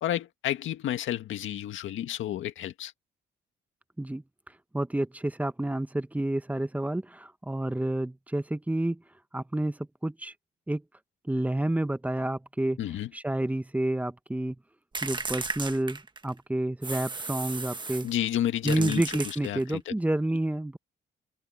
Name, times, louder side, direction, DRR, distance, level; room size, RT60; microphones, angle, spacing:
voice 1, 0.0-2.9 12.8-13.1 18.0-19.9, left 12 dB, 75° left, 1.9 m, -31 dB
voice 2, 4.7-9.0 9.3-10.3 10.7-10.8 11.2-12.8 13.1-14.6 15.0-18.1 18.6-20.8, right 1 dB, 5° right, 0.9 m, -29 dB
sound 1, 14.9-16.4 16.8-18.1 18.7-19.8, right 3 dB, 25° right, 1.5 m, -35 dB
cardioid pair, 90°, 20 cm